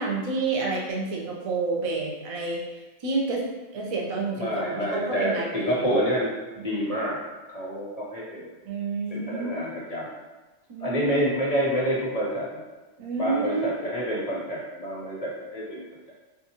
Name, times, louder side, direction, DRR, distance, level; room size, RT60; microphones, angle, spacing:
voice 1, 0.0-3.4 3.7-5.9 8.7-9.6 10.7-11.3 13.0-13.8, right 3 dB, 45° right, -2 dB, 0.4 m, -29 dB
voice 2, 4.4-7.2 7.5-8.5 9.1-10.1 10.8-12.6 13.2-16.1, equal, 40° left, -5 dB, 0.6 m, -28 dB
3.9 x 2.5 x 2.8 m, 1.2 s
omnidirectional pair, 1.3 m